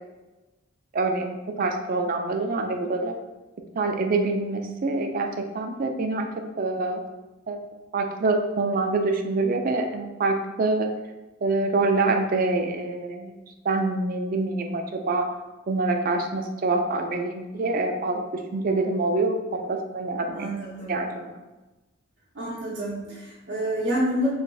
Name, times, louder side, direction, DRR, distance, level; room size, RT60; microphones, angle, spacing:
voice 1, 0.9-3.2 3.8-6.3 6.6-7.0 7.5-7.6 7.9-10.9 11.4-13.3 13.6-15.3 15.7-20.5 20.9-21.3, right 3 dB, 45° right, 5 dB, 0.4 m, -25 dB
voice 2, 20.3-20.9 22.3-24.3, equal, 70° right, -7 dB, 0.8 m, -28 dB
3.9 x 3.2 x 2.3 m, 1.1 s
head